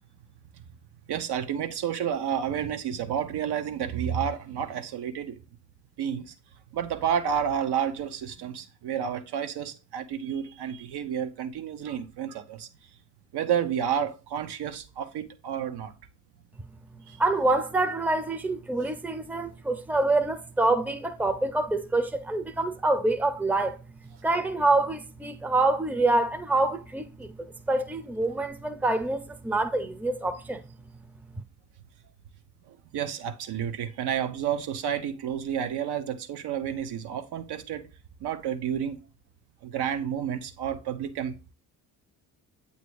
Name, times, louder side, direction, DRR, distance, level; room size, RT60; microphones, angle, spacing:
voice 1, 1.1-5.4 6.0-6.3 6.7-12.7 13.3-15.9 17.1-17.2 32.7-37.8 38.2-39.0 39.6-41.5, right 8 dB, 60° right, 0.9 m, -30 dB
voice 2, 17.2-23.8 24.2-27.3 27.7-30.6, right 2 dB, 5° right, 0.7 m, -26 dB
8.2 x 2.8 x 4.7 m
hypercardioid pair, 45°, 44 cm